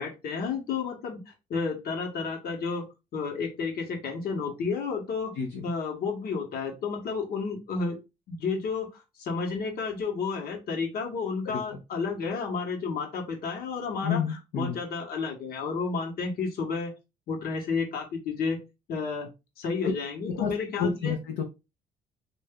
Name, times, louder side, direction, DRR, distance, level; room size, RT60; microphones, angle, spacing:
voice 1, 0.0-2.8 3.1-5.3 5.6-8.0 8.3-14.2 14.5-16.9 17.3-18.6 18.9-19.3 19.6-21.2, left 5 dB, 65° left, 3 dB, 1.2 m, -31 dB
voice 2, 14.0-14.8 19.8-19.9 20.3-20.5 20.8-21.4, left 6 dB, 80° left, 2 dB, 0.7 m, -29 dB
3.3 x 2.6 x 3.6 m, 0.26 s
cardioid pair, 110°, 17 cm